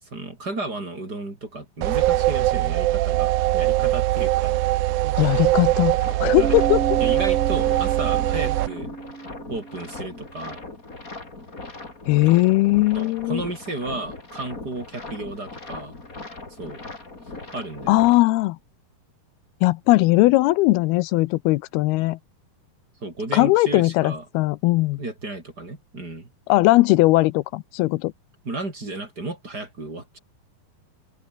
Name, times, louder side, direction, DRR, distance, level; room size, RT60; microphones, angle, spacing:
voice 1, 0.0-4.6 6.3-6.6 7.0-8.9 9.5-10.6 12.2-12.3 12.9-15.9 16.5-16.8 17.5-18.0 23.0-24.2 25.0-26.3 28.4-30.2, right 2 dB, 25° right, 5.1 m, -33 dB
sound 1, 1.8-8.7, right 16 dB, 90° right, 1.7 m, -21 dB
voice 2, 5.2-6.8 12.1-13.4 17.9-18.6 19.6-22.2 23.3-25.0 26.5-28.1, left 19 dB, 85° left, 2.6 m, -19 dB
sound 2, 6.0-18.2, left 3 dB, 20° left, 4.4 m, -39 dB
Bass guitar, 6.4-10.2, right 5 dB, 55° right, 6.8 m, -33 dB
open air
omnidirectional pair, 4.5 m